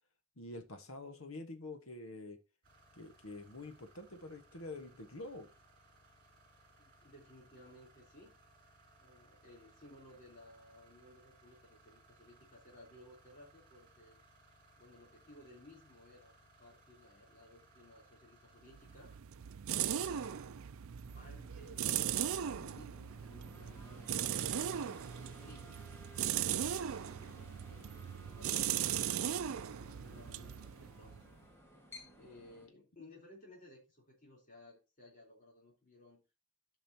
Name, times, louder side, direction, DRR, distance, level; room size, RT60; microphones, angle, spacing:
voice 1, 0.4-2.4 3.0-5.5, left 2 dB, 70° left, 6 dB, 1.3 m, -47 dB
sound 1, 2.6-19.2, right 2 dB, 40° right, 2.8 m, -65 dB
voice 2, 6.8-8.3 9.0-14.2 14.8-19.1 19.9-20.6 21.1-25.8 26.2-31.2 32.2-36.2, left 1 dB, 35° left, -3 dB, 3.5 m, -59 dB
sound 2, 18.7-31.4, right 9 dB, 70° right, 0.4 m, -38 dB
sound 3, 21.1-32.7, left 1 dB, 10° left, 1.6 m, -58 dB
14.0 x 5.4 x 2.8 m, 0.28 s
head